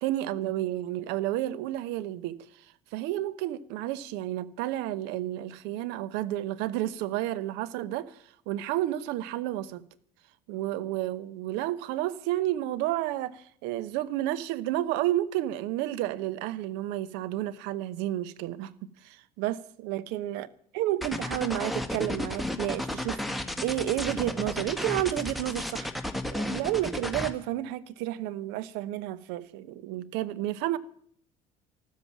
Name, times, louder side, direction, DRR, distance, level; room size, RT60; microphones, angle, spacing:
voice 1, 0.0-2.5 2.9-8.2 8.5-9.8 10.5-20.5 20.7-23.2 23.6-25.9 26.3-30.8, right 14 dB, 60° right, 0.9 m, -31 dB
sound 1, 21.0-27.3, left 1 dB, ahead, 1.7 m, -32 dB
14.5 x 13.0 x 7.3 m
figure-of-eight pair, 60°, 20 cm